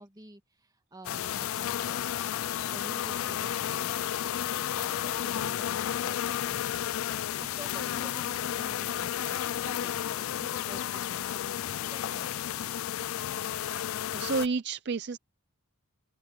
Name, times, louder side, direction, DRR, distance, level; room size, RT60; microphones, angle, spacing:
voice 1, 0.0-2.2 2.7-4.4 4.7-12.4, right 1 dB, 15° right, 2.0 m, -50 dB
sound 1, 1.0-14.5, left 11 dB, 65° left, 0.3 m, -32 dB
voice 2, 13.7-15.2, right 4 dB, 50° right, 0.5 m, -31 dB
head